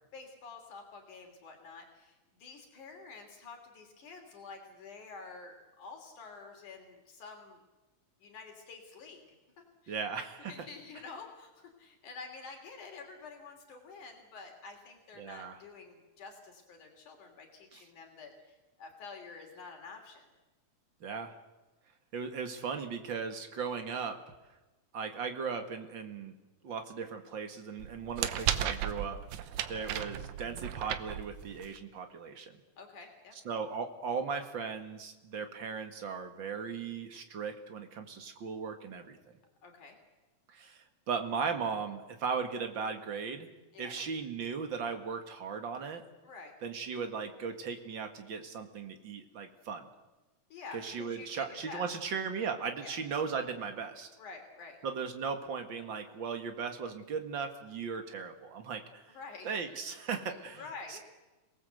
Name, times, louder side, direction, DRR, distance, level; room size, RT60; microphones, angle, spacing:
voice 1, 0.1-7.6 8.2-9.2 9.6-10.0 10.5-20.3 28.4-28.5 32.8-33.3 39.6-40.0 43.7-43.9 46.2-46.5 50.5-51.9 52.8-53.0 54.2-54.8 59.1-59.8 60.3-61.0, left 4 dB, 75° left, 3 dB, 4.3 m, -49 dB
voice 2, 9.9-10.7 15.2-15.6 17.7-17.8 21.0-21.3 22.1-24.2 24.9-26.3 26.6-32.5 33.5-39.2 40.5-43.5 43.8-46.0 46.6-49.9 50.7-54.1 54.8-59.2 59.4-60.6 60.9-61.0, right 5 dB, 40° right, 6 dB, 2.2 m, -37 dB
sound 1, 27.8-31.8, right 10 dB, 70° right, 2.2 m, -35 dB
27.0 x 18.5 x 8.0 m, 1.1 s
omnidirectional pair, 3.6 m